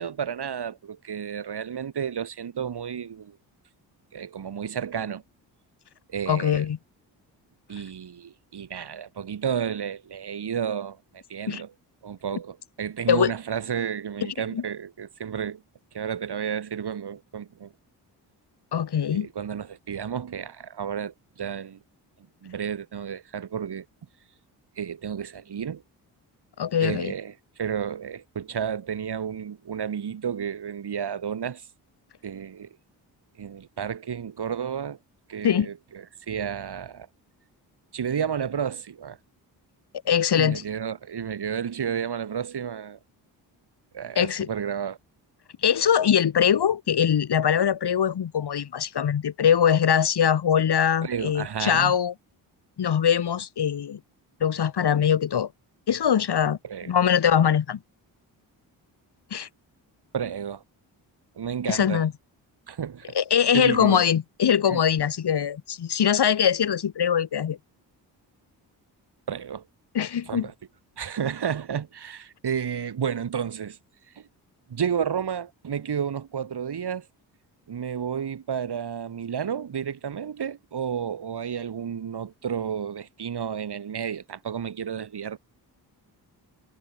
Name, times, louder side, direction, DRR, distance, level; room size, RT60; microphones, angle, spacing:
voice 1, 0.0-3.4 4.1-5.2 6.1-6.6 7.7-11.7 12.0-15.6 15.9-17.7 19.1-21.8 22.4-23.8 24.8-25.8 26.8-27.3 27.6-31.7 32.2-32.7 33.4-35.0 35.3-37.1 37.9-39.2 40.3-43.0 43.9-45.0 51.0-52.0 56.6-56.9 60.1-60.6 61.4-62.0 62.7-63.2 63.5-64.1 64.7-64.8 69.3-69.6 70.3-70.5 71.0-73.8 74.1-74.3 74.7-77.1 77.7-85.4, right 8 dB, 60° right, 6.6 m, -31 dB
voice 2, 6.3-6.8 11.5-11.6 13.1-13.3 14.5-14.6 18.7-19.3 26.6-27.1 35.4-35.7 40.1-40.6 44.2-44.5 45.6-52.1 52.8-54.0 54.4-55.5 55.9-56.6 56.9-57.8 59.3-59.5 61.7-62.1 63.2-67.6 69.9-70.5, left 8 dB, 60° left, 3.4 m, -22 dB
supercardioid pair, 55°, 45 cm